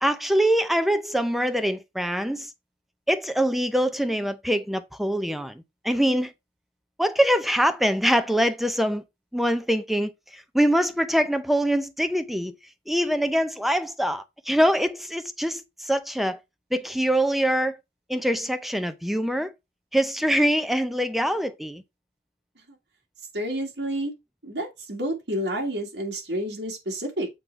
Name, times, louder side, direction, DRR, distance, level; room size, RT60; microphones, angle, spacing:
voice 1, 0.0-2.5 3.1-6.3 7.0-9.0 9.3-12.5 12.9-16.4 16.7-17.8 18.1-19.5 19.9-21.8, equal, ahead, 0.6 m, -24 dB
voice 2, 23.3-24.1 24.4-27.3, right 1 dB, 80° right, 2.0 m, -29 dB
7.6 x 3.8 x 4.6 m
head